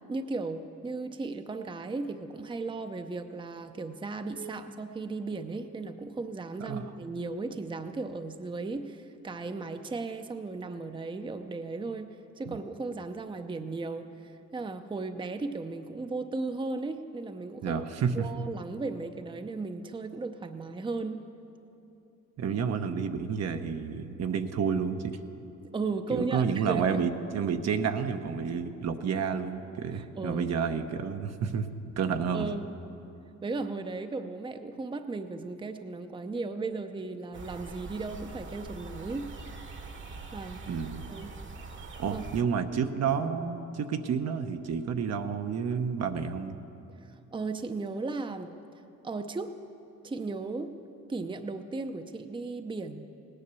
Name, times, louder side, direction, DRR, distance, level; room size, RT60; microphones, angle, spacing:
voice 1, 0.1-12.1 12.4-17.8 18.1-21.2 25.7-27.0 29.9-30.5 32.3-32.7 33.4-39.3 40.3-40.6 41.1-41.3 42.1-42.2 47.0-48.5 49.0-49.6 50.0-50.7 51.1-53.1, right 3 dB, 15° right, 8 dB, 0.6 m, -36 dB
voice 2, 17.6-18.3 22.4-25.2 26.1-31.7 32.0-32.5 40.7-41.0 42.0-46.6, right 6 dB, 60° right, 7 dB, 0.9 m, -30 dB
sound 1, 37.3-42.4, right 4 dB, 40° right, 1.2 m, -43 dB
17.5 x 10.0 x 6.9 m, 2.9 s
cardioid pair, 90°, 30 cm